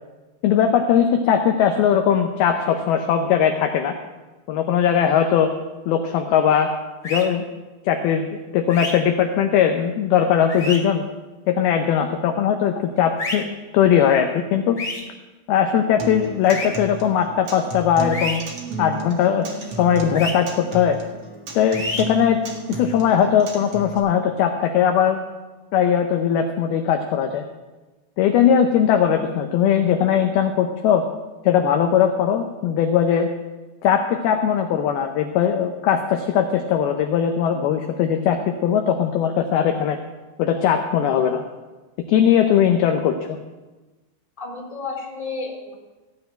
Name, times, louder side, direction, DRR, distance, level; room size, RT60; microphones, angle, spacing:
voice 1, 0.4-4.0 4.5-5.5 5.9-6.7 7.0-7.5 7.9-11.0 11.5-14.8 15.5-18.4 18.8-21.0 21.5-22.4 22.7-25.2 25.7-27.4 28.2-31.0 31.4-33.3 33.8-40.0 40.4-41.4 42.1-43.4, left 8 dB, 80° left, 5 dB, 2.3 m, -19 dB
sound 1, 7.0-7.2 8.7-8.9 10.5-10.8 13.2-13.4 14.8-15.0 16.5-16.7 18.1-18.4 20.1-20.3 21.7-22.0, left 2 dB, 30° left, 2.3 m, -28 dB
Acoustic guitar, 16.0-24.0, right 2 dB, 50° right, 1.8 m, -34 dB
voice 2, 44.4-45.7, left 4 dB, 10° left, -2 dB, 3.0 m, -31 dB
16.5 x 5.8 x 9.0 m, 1.2 s
omnidirectional pair, 5.2 m